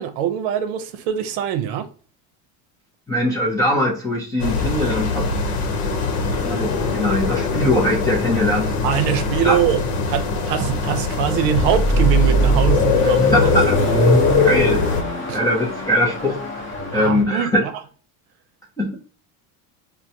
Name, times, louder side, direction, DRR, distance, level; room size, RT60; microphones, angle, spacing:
voice 1, 0.0-1.9 8.8-9.8 10.1-13.3 15.3-15.4 16.9-17.7, right 9 dB, 70° right, 0.7 m, -22 dB
voice 2, 3.1-5.3 6.4-8.8 9.4-9.6 13.0-14.9 15.3-17.7 18.8-19.0, left 1 dB, 10° left, 0.4 m, -22 dB
sound 1, 4.4-15.0, left 4 dB, 80° left, 0.9 m, -22 dB
Car passing by / Accelerating revving vroom, 11.2-17.2, right 1 dB, 25° left, 0.8 m, -22 dB
4.5 x 2.1 x 2.6 m
cardioid pair, 170°, 44 cm